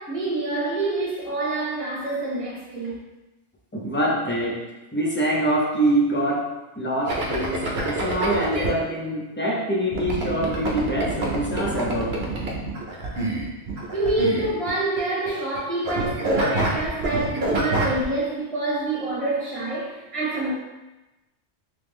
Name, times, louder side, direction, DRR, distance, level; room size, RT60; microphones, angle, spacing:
voice 1, 0.0-3.0 13.9-20.5, right 2 dB, 30° right, -7 dB, 1.3 m, -26 dB
voice 2, 3.7-4.6 4.9-6.5 6.8-12.1, right 1 dB, 15° left, -4 dB, 0.4 m, -24 dB
sound 1, 7.1-8.7 9.9-15.0 15.3-15.6 15.8-18.0, right 2 dB, 60° right, 0.9 m, -27 dB
3.4 x 3.1 x 3.2 m, 1.1 s
omnidirectional pair, 1.2 m